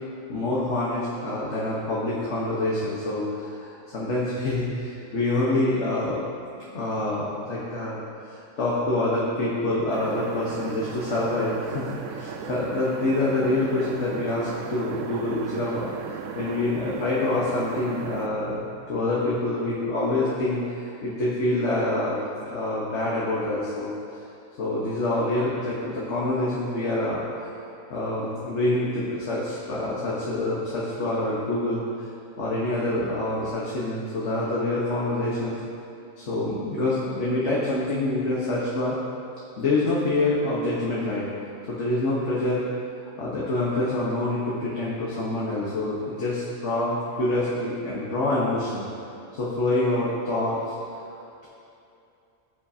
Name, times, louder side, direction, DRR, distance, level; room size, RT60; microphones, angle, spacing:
voice 1, 0.3-6.2 6.7-18.6 18.9-23.9 24.6-27.5 27.9-32.1 32.4-35.6 36.2-39.0 39.6-41.3 41.7-42.6 43.0-48.9 49.3-50.6 51.1-51.5, left 2 dB, 55° left, -7 dB, 1.5 m, -26 dB
sound 1, 9.9-18.3, right 7 dB, 70° right, 0.9 m, -36 dB
16.5 x 5.8 x 2.8 m, 2.7 s
omnidirectional pair, 1.4 m